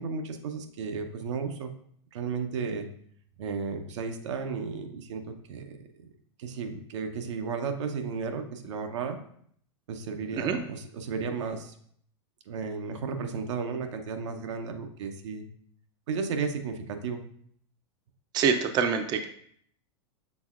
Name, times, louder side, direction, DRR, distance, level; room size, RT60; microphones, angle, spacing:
voice 1, 0.0-1.7 2.1-2.9 3.4-5.6 6.4-9.2 9.9-11.7 12.5-15.5 16.1-17.2, right 5 dB, 80° right, 6 dB, 0.6 m, -33 dB
voice 2, 18.3-19.3, right 6 dB, 30° right, 7 dB, 0.4 m, -25 dB
6.1 x 3.5 x 2.4 m, 0.65 s
hypercardioid pair, 125°, 15 cm